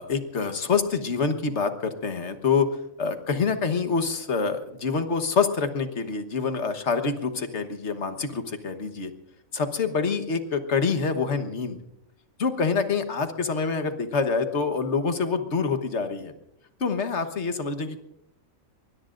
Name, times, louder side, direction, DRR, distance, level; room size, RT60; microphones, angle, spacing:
voice 1, 0.0-2.7 3.0-9.1 9.5-11.8 12.4-16.3 16.8-18.0, left 5 dB, 55° left, 8 dB, 1.5 m, -26 dB
25.0 x 22.5 x 2.6 m, 0.81 s
omnidirectional pair, 1.5 m